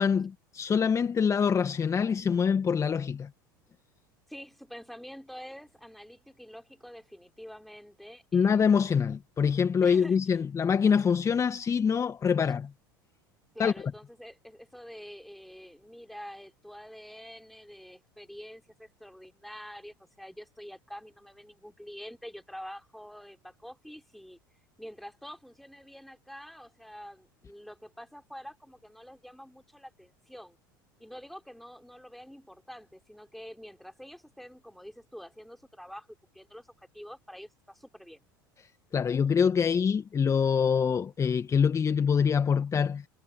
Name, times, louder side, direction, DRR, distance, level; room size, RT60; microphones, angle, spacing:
voice 1, 0.0-3.3 8.3-12.7 13.6-13.7 38.9-43.1, left 6 dB, 25° left, 1.8 m, -25 dB
voice 2, 4.3-8.6 9.8-10.4 12.4-12.5 13.5-24.4 24.8-30.6 31.0-38.2, equal, ahead, 4.6 m, -47 dB
figure-of-eight pair, 75°, 12 cm